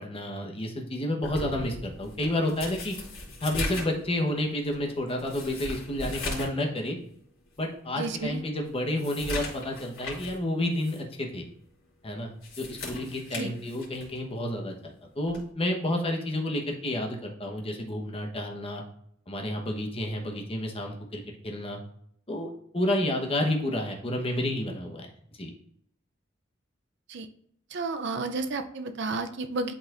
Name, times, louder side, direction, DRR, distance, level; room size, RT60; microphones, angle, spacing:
voice 1, 0.0-2.9 3.4-7.0 7.6-11.4 12.0-18.8 19.3-21.8 22.3-25.1 25.4-25.5, left 1 dB, 30° left, 1 dB, 1.0 m, -30 dB
sound 1, 1.2-6.6 7.0-7.1 7.6-7.7 8.2-10.4 10.8-11.0 12.2-14.2 15.3-15.5, left 2 dB, 80° left, 2.5 m, -38 dB
voice 2, 8.0-8.4 13.3-13.5 27.1-27.3 27.7-29.7, right 3 dB, 60° right, 7 dB, 0.5 m, -32 dB
10.5 x 4.1 x 2.5 m, 0.69 s
head